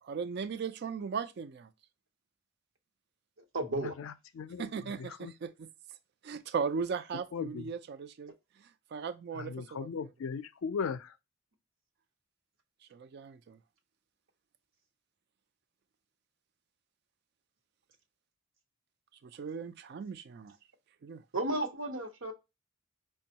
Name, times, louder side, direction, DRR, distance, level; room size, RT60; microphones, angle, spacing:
voice 1, 0.0-1.7 4.6-5.7 6.2-8.3 8.6-10.1 12.9-13.6 19.2-20.6 21.0-21.2, right 5 dB, 50° right, 0.3 m, -38 dB
voice 2, 3.5-3.9 21.3-22.3, right 1 dB, 75° right, 0.9 m, -33 dB
voice 3, 7.3-7.6 9.4-11.1, left 5 dB, 75° left, 0.4 m, -36 dB
5.1 x 2.3 x 2.8 m
head